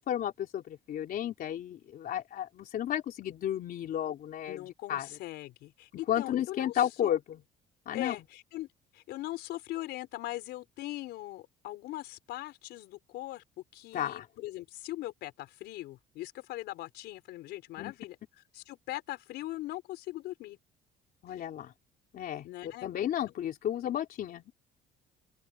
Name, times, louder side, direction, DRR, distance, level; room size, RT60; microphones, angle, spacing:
voice 1, 0.0-4.6 4.9-5.1 6.1-7.4 7.9-8.2 13.9-14.3 17.8-17.9 21.2-21.7 22.1-24.5, left 10 dB, 60° left, 3.5 m, -33 dB
voice 2, 4.5-7.2 7.9-8.7 8.9-13.4 13.7-20.6 21.3-21.5 22.4-22.9, left 16 dB, 80° left, 4.8 m, -41 dB
open air
cardioid pair, 110°, 17 cm